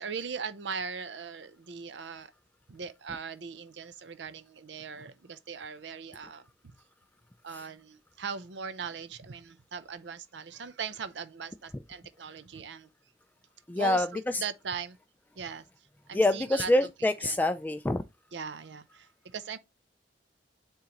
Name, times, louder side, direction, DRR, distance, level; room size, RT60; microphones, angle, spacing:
voice 1, 0.0-2.3 2.7-6.5 7.4-12.9 13.7-15.0 15.4-15.7 16.1-16.7 17.2-17.4 18.3-19.6, right 6 dB, 85° right, 0.6 m, -39 dB
voice 2, 13.7-14.1 16.1-18.0, left 1 dB, 10° left, 0.3 m, -25 dB
9.5 x 3.7 x 3.0 m
head